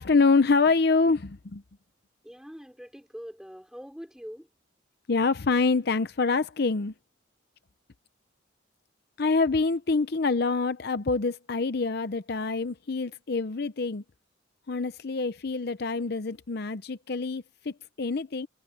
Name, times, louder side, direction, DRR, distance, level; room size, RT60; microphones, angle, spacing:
voice 1, 0.0-1.6 5.1-6.9 9.2-14.0 14.7-18.5, left 4 dB, 55° left, 0.6 m, -26 dB
voice 2, 2.2-4.5, equal, 5° right, 4.0 m, -43 dB
head